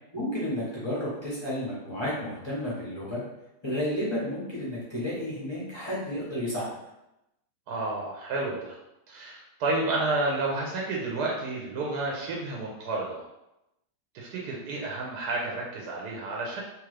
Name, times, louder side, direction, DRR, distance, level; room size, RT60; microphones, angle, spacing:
voice 1, 0.1-3.2 3.6-6.7, left 1 dB, 30° left, -8 dB, 0.5 m, -31 dB
voice 2, 7.7-8.8 9.1-13.3 14.1-16.6, right 2 dB, 75° right, -2 dB, 1.1 m, -30 dB
3.0 x 2.4 x 3.2 m, 0.90 s
omnidirectional pair, 1.8 m